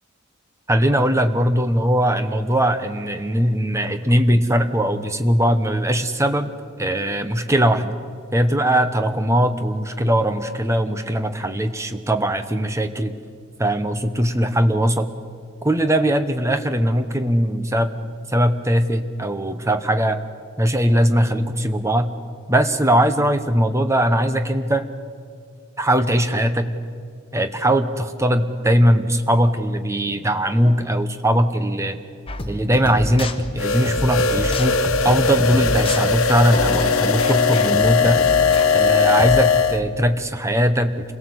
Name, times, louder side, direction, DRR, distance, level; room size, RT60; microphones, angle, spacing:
voice 1, 0.7-6.5 6.8-7.9 8.3-13.1 13.6-15.1 15.6-18.0 18.3-20.2 20.6-22.1 22.5-24.9 25.8-26.7 27.3-32.0 32.5-34.8 35.0-38.2 38.7-41.1, equal, 15° right, 9 dB, 1.0 m, -20 dB
sound 1, 32.3-39.4, left 1 dB, 25° left, 1.2 m, -29 dB
sound 2, 33.6-39.8, left 5 dB, 80° left, 1.2 m, -19 dB
27.0 x 17.5 x 8.0 m, 2.3 s
head